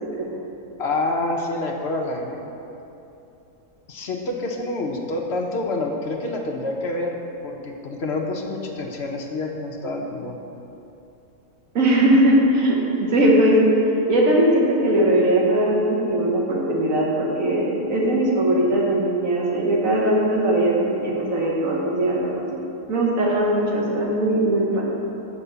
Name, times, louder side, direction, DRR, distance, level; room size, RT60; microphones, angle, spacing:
voice 1, 0.8-2.4 3.9-7.2 7.4-10.4, left 2 dB, 55° left, 1 dB, 0.9 m, -27 dB
voice 2, 11.7-12.8 13.1-13.6 14.1-22.4 22.9-24.8, right 1 dB, 65° right, -3 dB, 1.5 m, -19 dB
7.2 x 4.7 x 6.7 m, 2.8 s
omnidirectional pair, 1.6 m